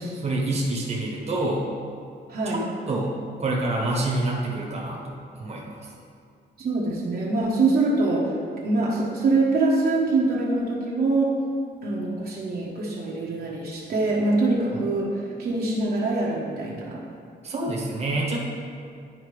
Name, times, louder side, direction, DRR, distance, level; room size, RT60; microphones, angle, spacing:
voice 1, 0.2-1.7 2.5-3.1 3.4-5.9 17.4-18.4, right 2 dB, 35° right, -3 dB, 1.2 m, -27 dB
voice 2, 2.3-2.6 6.6-8.3 8.6-11.4 11.8-17.0, right 3 dB, 55° right, -4 dB, 1.2 m, -24 dB
11.0 x 4.3 x 3.4 m, 2.3 s
cardioid pair, 130°, 18 cm